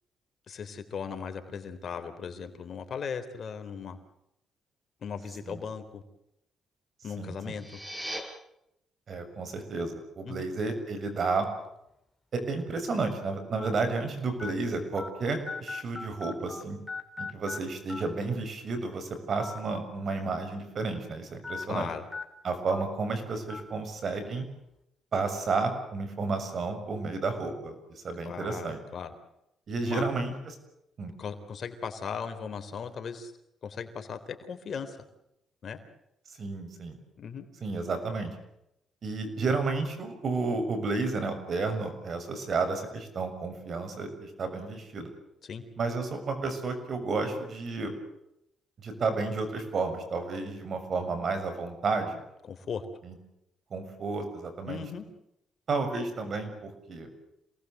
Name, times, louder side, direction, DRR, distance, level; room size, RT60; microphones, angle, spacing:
voice 1, 0.5-4.0 5.0-6.0 7.0-7.8 10.2-10.5 21.7-22.0 28.2-29.1 29.8-30.0 31.2-33.3 33.6-35.0 35.6-35.8 37.2-37.5 45.4-45.6 52.4-52.8 54.7-55.0, left 6 dB, 55° left, 7 dB, 3.6 m, -37 dB
voice 2, 7.2-7.5 9.1-11.5 12.3-16.8 17.2-21.9 22.4-24.5 25.1-27.8 28.0-28.8 29.7-30.5 31.0-31.1 36.4-37.0 37.6-38.3 39.0-45.1 45.8-47.9 48.8-52.2 53.0-53.1 53.7-54.8 55.7-57.1, right 3 dB, 50° right, 8 dB, 6.8 m, -31 dB
sound 1, 7.4-8.2, equal, 15° right, 5.7 m, -38 dB
sound 2, 11.4-11.7 12.4-12.5 13.6-13.7 14.4-14.5 15.0-15.1 15.5-16.6 16.9-17.6 17.9-18.0 19.3-19.6 20.0-20.1 21.4-21.6 22.1-22.2 22.7-22.8 23.5-23.6, left 4 dB, 15° left, 3.9 m, -38 dB
27.5 x 19.5 x 8.0 m, 0.82 s
cardioid pair, 90°, 0 cm